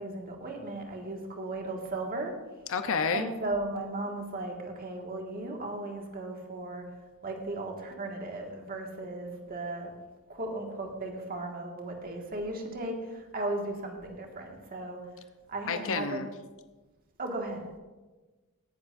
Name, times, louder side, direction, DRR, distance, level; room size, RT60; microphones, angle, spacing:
voice 1, 0.0-2.4 3.1-6.9 7.2-9.9 10.3-15.0 15.5-16.2 17.2-17.7, right 2 dB, 40° right, 1 dB, 1.9 m, -36 dB
voice 2, 2.7-3.3 15.7-16.3, left 5 dB, 65° left, 8 dB, 0.7 m, -29 dB
17.5 x 11.0 x 2.6 m, 1.2 s
head